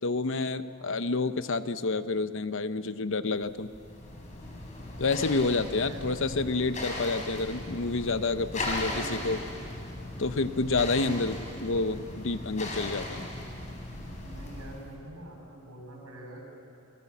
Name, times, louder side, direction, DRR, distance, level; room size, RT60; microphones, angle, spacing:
voice 1, 0.0-3.7 5.0-9.4 10.2-13.3, left 3 dB, 60° left, 12 dB, 0.9 m, -29 dB
voice 2, 0.7-1.0 5.8-6.1 8.9-9.6 14.1-16.5, right 1 dB, 90° right, 0 dB, 7.0 m, -46 dB
sound 1, 3.4-14.9, left 1 dB, 35° left, 4.6 m, -38 dB
28.0 x 21.0 x 7.3 m, 2.5 s
head